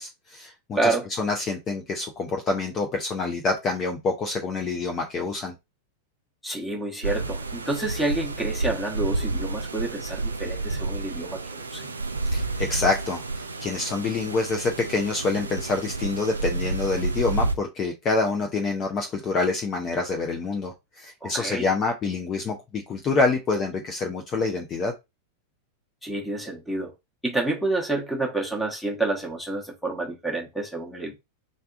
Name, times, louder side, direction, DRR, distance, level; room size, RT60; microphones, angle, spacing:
voice 1, 0.0-5.5 12.3-24.9, left 3 dB, 30° left, 0.6 m, -27 dB
voice 2, 0.7-1.1 6.4-11.9 21.2-21.7 26.0-26.9 27.2-31.2, right 2 dB, 5° left, 1.1 m, -28 dB
sound 1, 7.0-17.5, right 3 dB, 75° right, 0.4 m, -30 dB
3.8 x 3.4 x 2.4 m
figure-of-eight pair, 90°, 0 cm